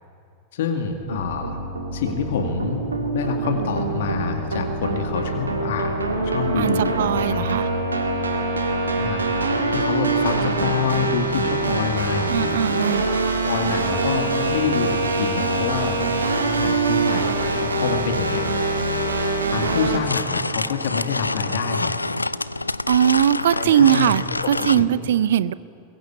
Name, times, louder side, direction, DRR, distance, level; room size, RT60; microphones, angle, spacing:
voice 1, 0.5-1.6 1.9-2.8 3.1-7.6 9.0-9.3 9.7-12.5 13.4-16.0 16.6-17.3 17.5-18.5 19.5-22.0 23.5-24.1 24.4-24.9, left 6 dB, 60° left, 4 dB, 2.2 m, -27 dB
sound 1, 1.0-20.0, right 2 dB, 75° right, 2.1 m, -24 dB
voice 2, 6.6-7.7 12.3-13.1 22.9-25.5, right 10 dB, 60° right, 19 dB, 0.6 m, -20 dB
sound 2, 19.6-24.8, left 2 dB, 85° left, 0.4 m, -27 dB
22.0 x 21.0 x 8.5 m, 2.6 s
figure-of-eight pair, 90°, 0 cm